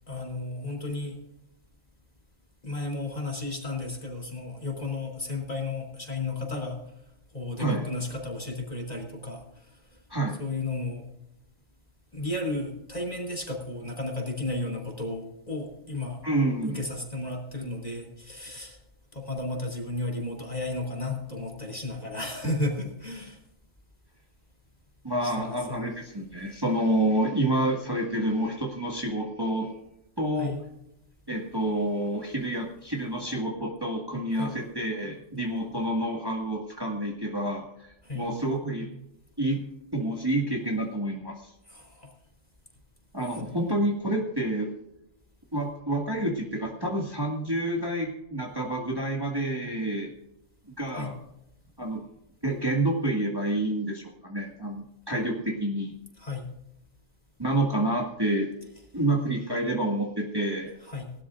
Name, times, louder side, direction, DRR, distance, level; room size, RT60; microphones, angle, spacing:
voice 1, 0.1-1.2 2.6-6.8 7.3-9.6 10.4-11.0 12.1-16.2 16.6-18.8 19.1-23.4 25.2-25.8 30.4-30.6 34.3-34.5 38.0-38.3 41.7-42.1 43.3-43.5 50.9-51.1 56.2-56.5 60.9-61.1, left 2 dB, 30° left, 2 dB, 3.3 m, -33 dB
voice 2, 10.1-10.4 16.2-16.8 25.0-29.7 30.2-30.5 31.3-39.0 39.4-39.6 39.9-41.5 43.1-44.7 45.5-50.1 50.8-51.2 51.8-52.0 52.4-55.9 57.4-58.5 58.9-60.7, right 1 dB, 20° right, -1 dB, 1.9 m, -28 dB
19.5 x 12.5 x 2.5 m, 0.84 s
omnidirectional pair, 1.3 m